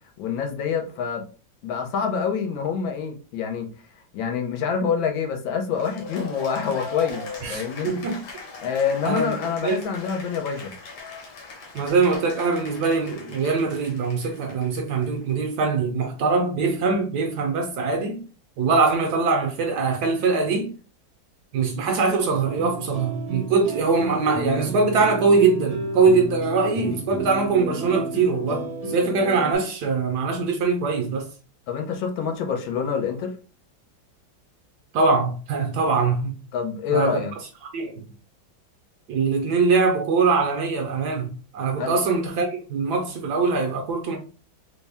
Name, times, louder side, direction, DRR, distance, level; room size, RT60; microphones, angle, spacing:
voice 1, 0.2-1.3 1.6-3.7 4.1-7.9 8.6-10.7 31.7-33.3 36.5-37.3 41.8-42.0, left 6 dB, 85° left, 1.5 m, -26 dB
Cheering / Applause, 5.7-15.3, left 4 dB, 60° left, 1.5 m, -40 dB
voice 2, 7.4-8.2 9.0-9.3 9.6-9.8 11.7-18.2 18.6-20.7 21.5-31.3 34.9-36.3 36.9-37.2 37.7-38.1 39.1-44.2, right 4 dB, 70° right, 1.0 m, -22 dB
sound 1, 22.4-29.5, right 3 dB, 45° right, 0.4 m, -32 dB
4.2 x 2.1 x 3.4 m
omnidirectional pair, 2.1 m